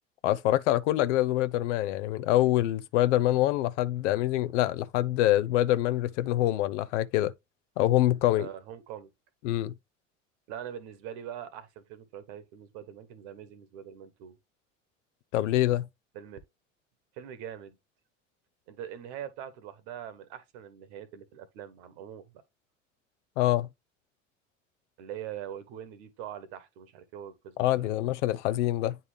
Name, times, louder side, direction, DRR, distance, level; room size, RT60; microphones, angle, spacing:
voice 1, 0.2-7.3 7.8-8.5 9.4-9.7 15.3-15.9 23.4-23.7 27.6-29.0, left 14 dB, 65° left, 0.6 m, -25 dB
voice 2, 8.3-9.1 10.5-14.4 16.1-16.4 17.1-17.7 18.7-22.4 25.0-27.9, right 10 dB, 60° right, 1.2 m, -43 dB
9.2 x 3.4 x 3.3 m
figure-of-eight pair, 70°, 38 cm